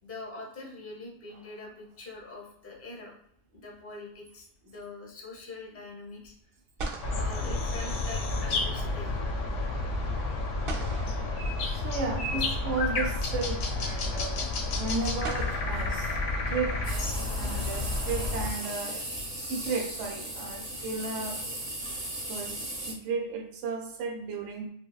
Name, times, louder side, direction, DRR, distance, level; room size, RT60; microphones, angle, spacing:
voice 1, 0.0-3.1 3.5-6.3 7.1-9.2, left 2 dB, 15° left, -1 dB, 0.5 m, -43 dB
sound 1, 1.3-2.2 6.2-6.3 6.8-8.5 10.7-12.3 13.6-13.7 15.2-16.9, right 2 dB, 60° right, 0.7 m, -42 dB
sound 2, 7.0-18.5, left 2 dB, 85° left, 0.9 m, -30 dB
voice 2, 11.6-16.2 16.5-19.0 19.4-21.6 22.1-24.7, right 4 dB, 90° right, 2 dB, 0.9 m, -34 dB
sound 3, 16.8-22.9, right 1 dB, 15° right, 0.9 m, -37 dB
3.3 x 2.1 x 2.2 m, 0.71 s
omnidirectional pair, 1.2 m